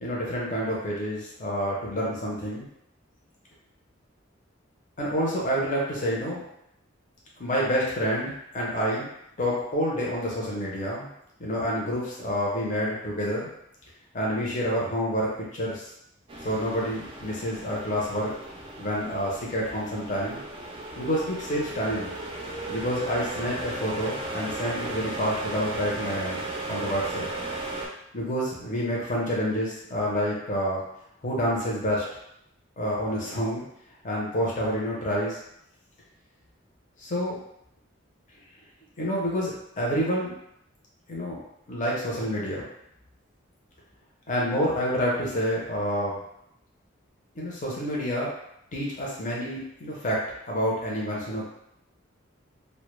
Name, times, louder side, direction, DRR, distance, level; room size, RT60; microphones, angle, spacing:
voice 1, 0.0-2.7 5.0-6.4 7.4-9.1 9.4-11.1 11.4-13.5 14.1-15.9 16.4-18.3 18.8-20.4 21.0-22.1 22.7-27.3 28.1-30.8 31.2-32.0 32.8-33.6 34.0-35.4 37.0-37.3 39.0-40.3 41.1-41.4 41.7-42.7 44.3-46.2 47.3-48.3 48.7-51.5, equal, 40° left, -4 dB, 0.6 m, -28 dB
sound 1, 16.3-27.9, right 2 dB, 25° right, 0.3 m, -36 dB
2.1 x 2.0 x 3.0 m, 0.78 s
head